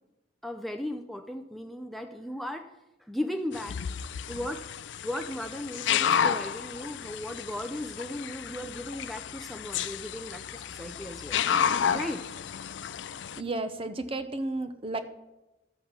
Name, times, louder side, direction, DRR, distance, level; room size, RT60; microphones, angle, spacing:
voice 1, 0.4-2.7 3.1-3.8 4.3-4.7 5.0-11.5 11.9-12.2, left 1 dB, ahead, 5 dB, 0.5 m, -36 dB
sound 1, 3.5-13.4, left 8 dB, 70° left, 0.4 m, -31 dB
voice 2, 13.4-15.0, right 2 dB, 30° right, 10 dB, 0.7 m, -32 dB
13.0 x 5.6 x 7.2 m, 0.99 s
head